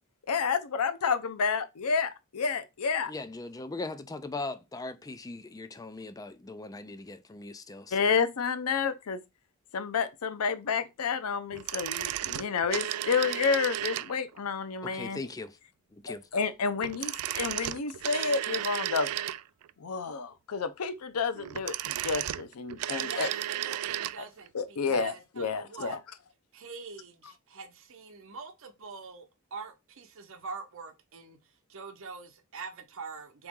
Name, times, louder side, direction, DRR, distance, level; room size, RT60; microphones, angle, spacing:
voice 1, 0.3-3.1 7.9-9.2 9.7-15.2 16.1-19.1 19.8-23.3 24.5-26.0, left 5 dB, 90° left, 0.6 m, -30 dB
voice 2, 3.0-8.1 14.8-15.6 15.9-16.3, left 3 dB, 15° left, 0.4 m, -40 dB
sound 1, 11.5-14.4 16.8-19.7 21.3-24.2 24.5-24.6, right 13 dB, 90° right, 0.3 m, -34 dB
voice 3, 23.0-26.0 26.5-29.3 29.5-31.4 31.7-33.5, right 4 dB, 65° right, 0.8 m, -43 dB
3.9 x 3.0 x 3.6 m
head